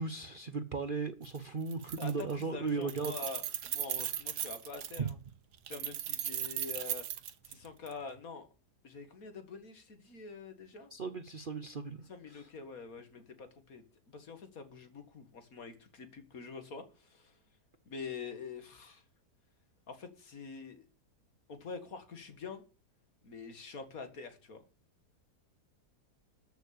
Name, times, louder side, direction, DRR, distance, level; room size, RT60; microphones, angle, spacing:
voice 1, 0.0-3.1 5.0-5.1 10.9-12.0 12.3-12.5, right 4 dB, 45° right, 0.7 m, -36 dB
Keys jangling, 1.2-1.4 1.7-2.4 2.7-5.1 5.7-7.9, right 10 dB, 80° right, 1.5 m, -37 dB
voice 2, 2.0-5.2 5.7-7.1 7.4-8.5 8.8-10.9 12.1-17.4 17.9-19.0 19.9-20.8 21.5-22.6 23.2-24.6, left 4 dB, 60° left, 2.2 m, -46 dB
13.5 x 6.4 x 6.7 m
omnidirectional pair, 1.7 m